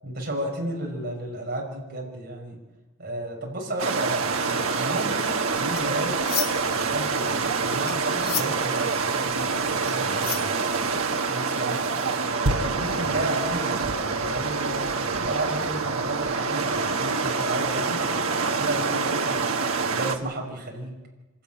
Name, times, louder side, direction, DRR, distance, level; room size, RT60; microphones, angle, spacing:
voice 1, 0.0-2.6 3.0-6.2 6.7-10.9 11.3-11.8 12.2-18.0 18.4-19.5 19.9-21.0, right 1 dB, 50° right, -1 dB, 5.6 m, -33 dB
sound 1, 3.8-20.2, right 4 dB, 75° right, 1.4 m, -26 dB
sound 2, 5.7-6.8 7.1-11.1, left 10 dB, 45° left, 1.1 m, -34 dB
26.0 x 13.0 x 9.1 m, 1.2 s
head